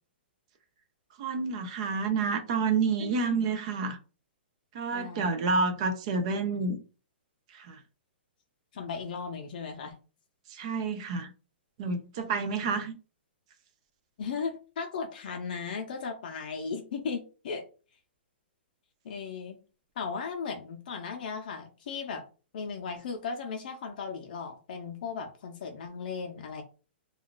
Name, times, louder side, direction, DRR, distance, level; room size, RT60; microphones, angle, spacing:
voice 1, 1.2-4.0 4.7-6.8 7.5-7.8 10.5-11.3 11.8-13.0, right 4 dB, 35° right, 0.3 m, -29 dB
voice 2, 4.9-5.8 8.7-9.9 12.6-12.8 14.2-17.6 19.0-19.6 20.0-22.2 22.5-26.6, left 5 dB, 50° left, 0.5 m, -36 dB
2.3 x 2.3 x 3.7 m
hypercardioid pair, 165°, 6 cm